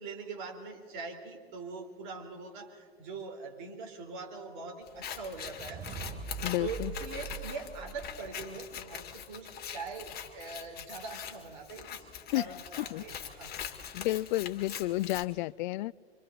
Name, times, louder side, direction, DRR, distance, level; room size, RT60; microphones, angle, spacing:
voice 1, 0.0-5.9 6.6-13.6, right 4 dB, 55° right, 4 dB, 3.7 m, -42 dB
Scissors, 4.9-15.3, left 8 dB, 30° left, 2.1 m, -43 dB
sound 1, 5.3-8.5, right 5 dB, 35° right, 3.1 m, -43 dB
voice 2, 6.4-6.9 12.3-12.4 12.9-13.0 13.9-15.9, left 18 dB, 50° left, 23 dB, 0.4 m, -31 dB
26.5 x 26.0 x 4.0 m, 2.2 s
hypercardioid pair, 95°, 31 cm